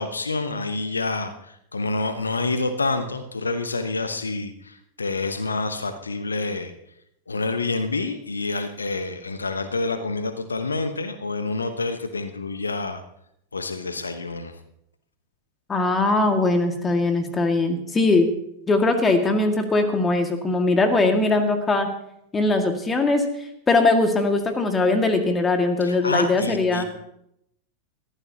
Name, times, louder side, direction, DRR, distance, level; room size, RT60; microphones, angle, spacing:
voice 1, 0.0-6.7 7.3-13.0 13.5-14.6 25.8-26.8, left 3 dB, 75° left, 10 dB, 1.0 m, -28 dB
voice 2, 15.7-18.3 18.7-21.9 22.3-23.2 23.7-26.8, left 2 dB, 15° left, 6 dB, 2.0 m, -20 dB
21.0 x 14.5 x 2.9 m, 0.76 s
figure-of-eight pair, 90°, 0 cm